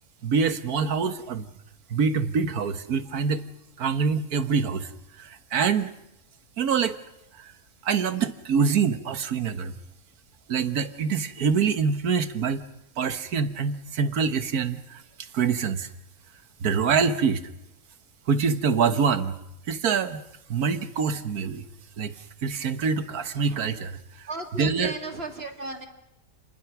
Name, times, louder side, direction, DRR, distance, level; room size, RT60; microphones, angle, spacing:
voice 1, 0.2-1.5 1.9-3.5 3.8-4.9 5.2-5.9 6.6-7.0 7.3-7.5 7.8-9.8 10.5-12.6 13.0-15.9 16.6-17.4 18.3-19.4 19.7-20.2 20.5-21.7 22.0-22.2 22.4-24.3 24.6-24.9, right 6 dB, 80° right, 11 dB, 1.7 m, -25 dB
voice 2, 24.3-25.9, right 2 dB, 40° right, 4 dB, 2.6 m, -35 dB
29.0 x 21.0 x 6.0 m, 0.87 s
omnidirectional pair, 1.6 m